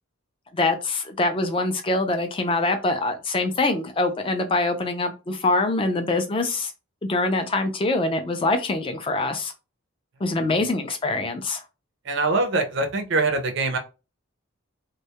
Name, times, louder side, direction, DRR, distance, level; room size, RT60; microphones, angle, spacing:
voice 1, 0.5-6.7 7.0-9.5 10.2-11.6, left 2 dB, 25° left, 7 dB, 0.3 m, -24 dB
voice 2, 12.0-13.8, right 3 dB, 55° right, 6 dB, 0.4 m, -23 dB
2.2 x 2.0 x 2.8 m, 0.30 s
head